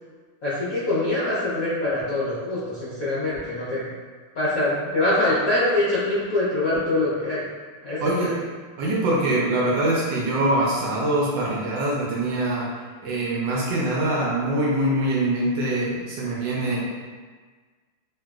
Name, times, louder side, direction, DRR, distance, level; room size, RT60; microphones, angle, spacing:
voice 1, 0.4-3.9 4.3-7.4 7.8-8.3, left 2 dB, 70° left, -11 dB, 0.8 m, -24 dB
voice 2, 7.9-8.3 8.8-12.7 13.0-16.8, right 1 dB, 75° right, -4 dB, 1.1 m, -23 dB
3.1 x 2.8 x 2.3 m, 1.5 s
omnidirectional pair, 2.4 m